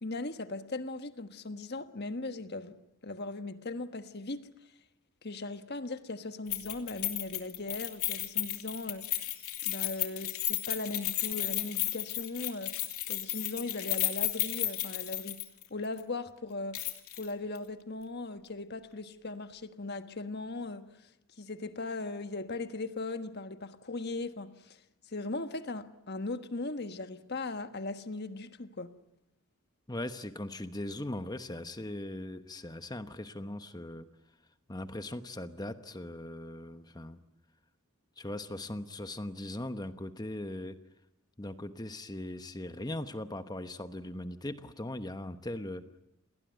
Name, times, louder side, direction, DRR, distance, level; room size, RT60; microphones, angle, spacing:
voice 1, 0.0-2.8 3.0-4.5 5.2-9.1 9.6-12.8 13.1-15.4 15.7-16.8 17.2-20.9 21.4-24.8 25.1-28.9, left 2 dB, 45° left, 1.4 m, -38 dB
Keys jangling, 6.5-15.7 16.0-16.1 16.7-17.3 17.6-17.7, left 16 dB, 75° left, 3.0 m, -33 dB
voice 2, 29.9-34.1 34.7-37.2 38.2-40.8 41.4-45.8, left 1 dB, 20° left, 1.0 m, -39 dB
29.0 x 20.0 x 9.2 m
head